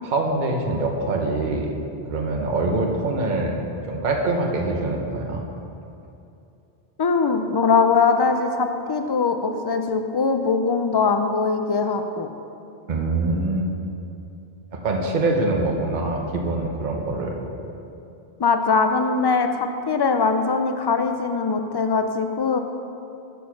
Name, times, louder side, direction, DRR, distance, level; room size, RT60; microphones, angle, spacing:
voice 1, 0.0-1.7 2.1-3.6 3.9-5.4 12.9-13.7 14.7-17.4, right 2 dB, 50° right, 1 dB, 1.0 m, -24 dB
voice 2, 7.0-12.3 18.4-22.6, left 4 dB, 35° left, 7 dB, 0.4 m, -21 dB
8.2 x 6.5 x 5.8 m, 2.7 s
omnidirectional pair, 1.0 m